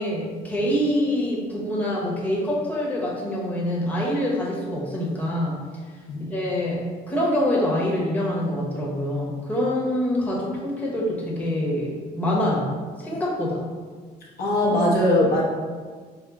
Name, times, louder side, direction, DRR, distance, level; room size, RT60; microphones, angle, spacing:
voice 1, 0.0-5.6 6.3-13.6, left 1 dB, 10° left, -5 dB, 0.9 m, -25 dB
voice 2, 14.4-15.4, left 1 dB, 65° left, -3 dB, 0.9 m, -20 dB
4.4 x 2.1 x 3.6 m, 1.5 s
cardioid pair, 110°, 17 cm